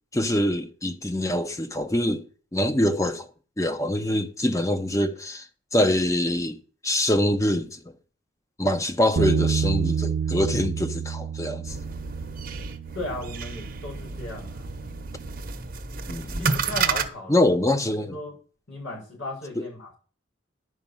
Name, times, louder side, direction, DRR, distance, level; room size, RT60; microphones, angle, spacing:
voice 1, 0.1-2.3 2.5-3.3 3.6-5.5 5.7-6.6 6.8-7.9 8.6-11.8 16.1-16.5 17.3-18.2 19.6-19.7, left 1 dB, 15° left, 0.9 m, -24 dB
Bass guitar, 9.2-15.4, right 7 dB, 75° right, 0.4 m, -29 dB
sound 1, 11.7-17.1, right 5 dB, 50° right, 1.0 m, -31 dB
voice 2, 12.9-14.7 16.4-17.4 18.0-18.3 18.7-20.0, left 1 dB, 85° left, 6.4 m, -36 dB
11.5 x 5.3 x 7.3 m
head